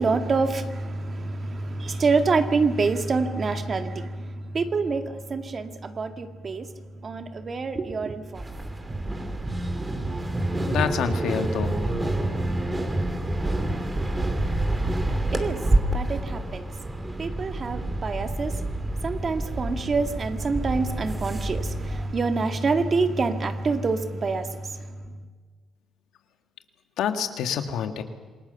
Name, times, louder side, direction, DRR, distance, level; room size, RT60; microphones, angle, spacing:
voice 1, 0.0-6.7 7.0-8.4 9.1-9.5 15.3-15.6 15.9-16.7 17.2-25.0, right 4 dB, 40° right, 2.0 m, -26 dB
sound 1, 8.4-22.1, right 1 dB, 20° right, 2.8 m, -28 dB
voice 2, 10.7-12.0 27.0-28.0, left 8 dB, 80° left, 1.9 m, -27 dB
27.5 x 19.5 x 7.0 m
cardioid pair, 90°, 0 cm